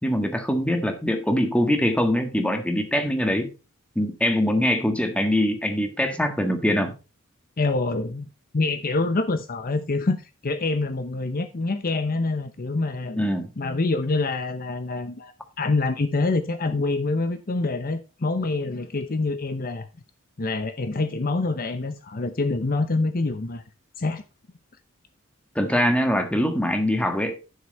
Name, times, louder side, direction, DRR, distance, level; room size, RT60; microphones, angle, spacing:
voice 1, 0.0-3.5 3.9-6.9 13.2-13.5 25.5-27.4, equal, 5° left, 6 dB, 1.4 m, -23 dB
voice 2, 7.6-8.3 8.5-13.2 13.6-15.3 15.6-19.9 20.4-23.6 24.0-24.2, left 3 dB, 45° left, 10 dB, 0.7 m, -26 dB
11.0 x 6.2 x 4.2 m, 0.30 s
head